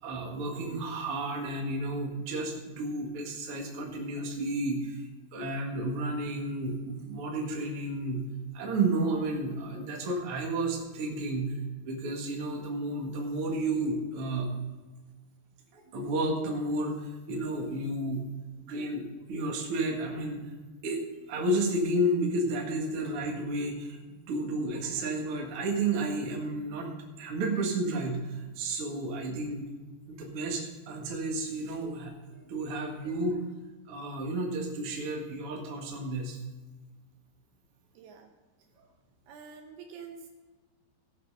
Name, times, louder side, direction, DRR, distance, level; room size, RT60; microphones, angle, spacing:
voice 1, 0.0-5.0 5.3-8.2 8.5-11.5 11.8-14.5 15.7-18.2 18.6-20.4 20.8-24.0 24.3-29.7 30.1-32.1 32.5-33.4 33.9-36.4, right 2 dB, 50° right, 0 dB, 1.8 m, -32 dB
voice 2, 37.9-38.3 39.3-40.3, right 6 dB, 75° right, 4 dB, 2.6 m, -47 dB
16.5 x 5.9 x 5.5 m, 1.3 s
omnidirectional pair, 5.0 m